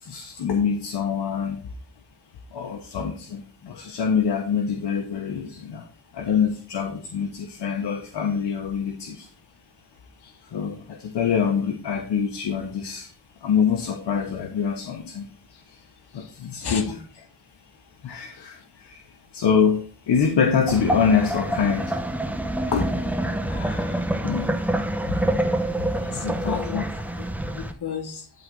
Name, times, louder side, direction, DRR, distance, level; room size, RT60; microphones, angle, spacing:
voice 1, 0.0-1.6 2.5-5.9 6.1-9.3 10.5-13.1 13.4-15.3 15.7-15.8 16.1-17.2 18.0-19.0 19.3-22.0 22.7-22.9 24.2-24.6 25.1-25.2 25.8-26.9, left 6 dB, 90° left, 3 dB, 1.2 m, -25 dB
voice 2, 16.6-17.0 23.5-24.0 26.0-26.8 27.5-28.3, left 6 dB, 75° left, 4 dB, 2.0 m, -34 dB
sound 1, 20.7-27.7, right 1 dB, 5° right, 0.9 m, -26 dB
12.0 x 4.1 x 4.7 m, 0.40 s
wide cardioid pair, 100°, 40 cm